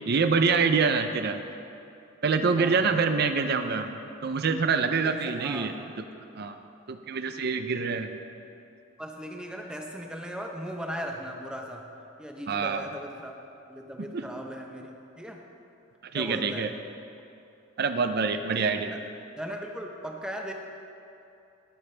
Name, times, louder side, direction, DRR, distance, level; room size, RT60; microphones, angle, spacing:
voice 1, 0.1-1.4 2.2-6.0 6.4-6.6 6.9-8.1 12.5-12.8 14.1-14.3 16.1-16.7 17.8-18.9, right 5 dB, 50° right, 8 dB, 0.5 m, -26 dB
voice 2, 5.0-5.9 9.0-11.8 12.2-13.3 13.7-14.9 15.2-15.4 16.1-16.7 19.4-20.5, equal, 5° right, 1 dB, 0.7 m, -38 dB
17.5 x 7.2 x 3.3 m, 2.8 s
head